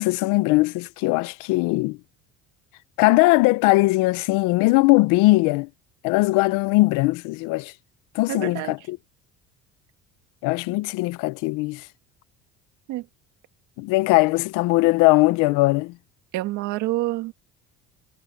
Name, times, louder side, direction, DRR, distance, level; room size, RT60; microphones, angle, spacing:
voice 1, 0.0-2.0 3.0-5.7 6.0-7.7 8.1-9.0 10.4-11.9 13.8-16.0, left 22 dB, 85° left, 0.8 m, -20 dB
voice 2, 8.3-8.7 12.9-13.0 16.3-17.3, right 17 dB, 70° right, 2.0 m, -27 dB
cardioid pair, 155°, 30 cm